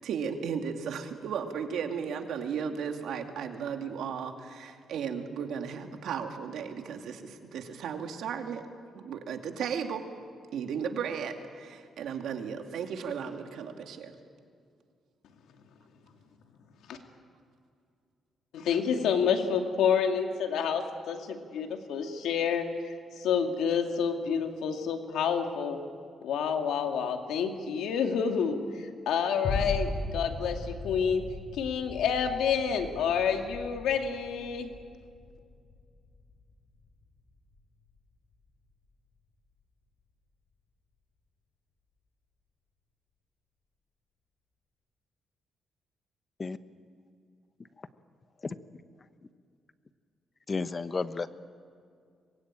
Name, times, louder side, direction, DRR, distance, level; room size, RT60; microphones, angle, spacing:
voice 1, 0.0-8.6 8.9-10.0 10.5-14.1, right 7 dB, 80° right, 4 dB, 2.4 m, -35 dB
voice 2, 18.5-22.7 23.2-25.8 26.2-28.6 29.1-31.2 31.5-34.7, left 7 dB, 85° left, 4 dB, 2.4 m, -28 dB
sound 1, 29.4-38.0 38.5-38.6, left 3 dB, 60° left, 6.7 m, -38 dB
voice 3, 50.5-51.3, left 4 dB, 30° left, 12 dB, 1.0 m, -32 dB
24.5 x 21.0 x 9.1 m, 2.3 s
cardioid pair, 100°, 0 cm